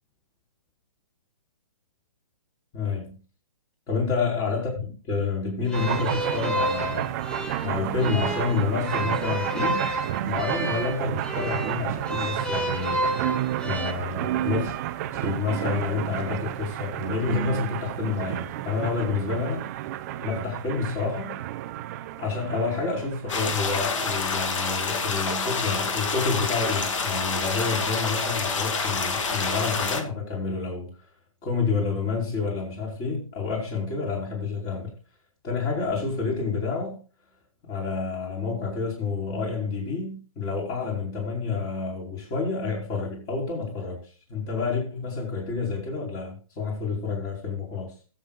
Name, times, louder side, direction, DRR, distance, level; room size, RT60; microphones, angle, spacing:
voice 1, 2.7-3.1 3.9-7.1 7.6-9.8 10.2-13.1 13.6-14.7 15.1-19.6 20.2-21.4 22.2-30.9 31.4-34.9 35.4-37.0 37.7-44.0 44.3-47.9, left 4 dB, 25° left, 4.8 m, -29 dB
sound 1, 5.7-13.9, right 1 dB, 5° left, 1.1 m, -31 dB
sound 2, 5.7-24.9, right 13 dB, 30° right, 0.6 m, -31 dB
sound 3, 23.3-30.0, left 4 dB, 65° left, 2.7 m, -27 dB
21.5 x 7.4 x 2.4 m
hypercardioid pair, 150°, 18 cm